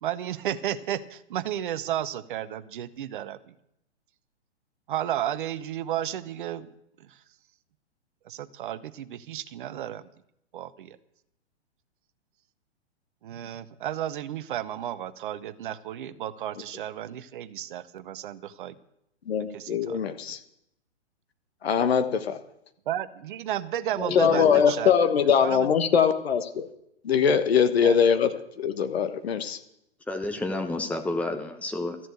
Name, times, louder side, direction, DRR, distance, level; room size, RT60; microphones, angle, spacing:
voice 1, 0.0-3.5 4.9-6.7 7.0-7.1 8.3-10.0 10.5-11.0 13.2-18.8 19.5-20.0 22.9-25.0 25.4-25.7 25.9-26.0 27.3-27.4 27.8-28.0, right 11 dB, 45° right, 14 dB, 0.8 m, -33 dB
voice 2, 19.3-20.4 21.6-22.4 24.1-26.7 27.0-28.3 28.6-29.6, left 7 dB, 65° left, 9 dB, 1.2 m, -22 dB
voice 3, 24.0-24.6 30.1-32.0, left 2 dB, 5° left, 4 dB, 0.9 m, -30 dB
13.5 x 7.5 x 8.2 m, 0.81 s
figure-of-eight pair, 120°, 34 cm